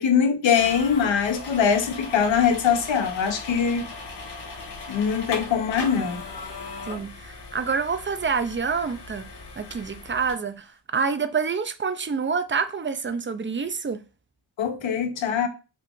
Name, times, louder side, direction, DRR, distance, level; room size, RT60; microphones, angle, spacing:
voice 1, 0.0-3.8 4.9-6.2 14.6-15.5, left 7 dB, 80° left, 1.1 m, -22 dB
sound 1, 0.5-10.3, left 3 dB, 65° left, 1.8 m, -38 dB
voice 2, 6.9-9.3 9.6-14.0, right 5 dB, 25° right, 0.5 m, -27 dB
5.6 x 2.5 x 3.7 m
cardioid pair, 100°, 45 cm